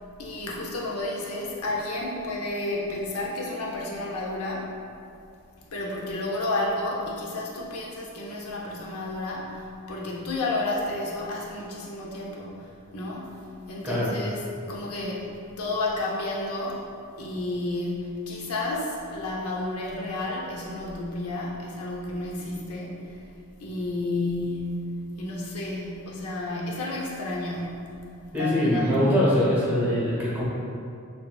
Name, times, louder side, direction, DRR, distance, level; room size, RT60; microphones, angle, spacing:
voice 1, 0.2-4.7 5.6-14.4 14.7-16.9 17.2-23.2 23.6-24.9 25.2-28.0 28.3-29.0, left 2 dB, 85° left, -3 dB, 0.7 m, -31 dB
voice 2, 28.3-30.4, left 1 dB, 5° right, -9 dB, 1.1 m, -23 dB
6.8 x 2.7 x 2.3 m, 2.5 s
head